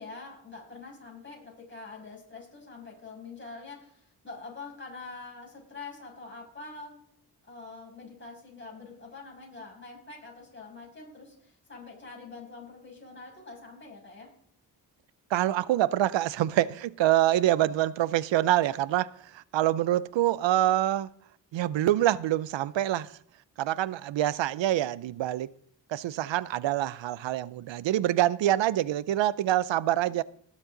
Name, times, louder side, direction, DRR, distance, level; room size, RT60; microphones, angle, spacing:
voice 1, 0.0-7.0 7.5-14.3, left 3 dB, 25° left, 6.6 m, -45 dB
voice 2, 15.3-21.1 21.5-23.1 23.6-25.5 25.9-30.2, right 13 dB, 85° right, 0.6 m, -26 dB
19.5 x 7.4 x 3.9 m
cardioid pair, 80°, 44 cm